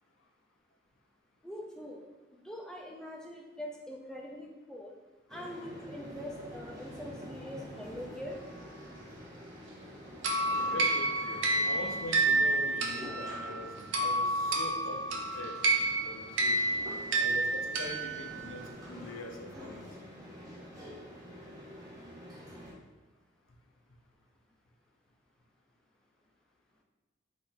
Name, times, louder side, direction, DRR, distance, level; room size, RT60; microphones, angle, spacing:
voice 1, 1.4-2.0 2.3-4.9 5.3-8.4, left 1 dB, 5° left, -1 dB, 0.4 m, -43 dB
sound 1, 5.3-22.7, equal, 20° right, 0.8 m, -47 dB
sound 2, 10.2-18.6, right 2 dB, 70° right, 0.6 m, -30 dB
voice 2, 10.7-15.6 16.0-16.6 17.1-20.1, left 2 dB, 85° left, 4 dB, 0.6 m, -43 dB
4.1 x 3.2 x 3.9 m, 1.1 s
head